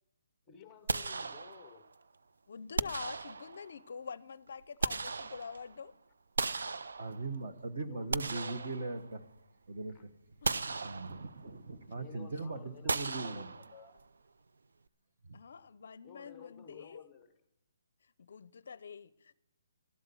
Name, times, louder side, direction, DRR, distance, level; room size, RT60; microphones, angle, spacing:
voice 1, 0.5-1.9 7.9-8.9 9.9-10.0 11.9-14.0 16.0-17.3, left 8 dB, 10° left, 10 dB, 0.8 m, -54 dB
sound 1, 0.9-1.9 2.8-3.8 4.5-5.8 6.4-7.5 7.9-9.4 9.8-9.9 10.4-11.5 12.9-14.0, right 4 dB, 75° right, 0.5 m, -37 dB
voice 2, 2.5-5.9 10.4-10.6 15.3-17.0 18.0-19.3, left 6 dB, 45° left, 19 dB, 0.5 m, -46 dB
voice 3, 7.0-9.2 9.7-10.1 10.5-13.5 15.2-15.4, right 3 dB, 35° right, 7 dB, 1.2 m, -40 dB
13.0 x 12.0 x 7.0 m, 0.78 s
hypercardioid pair, 180°, 0 cm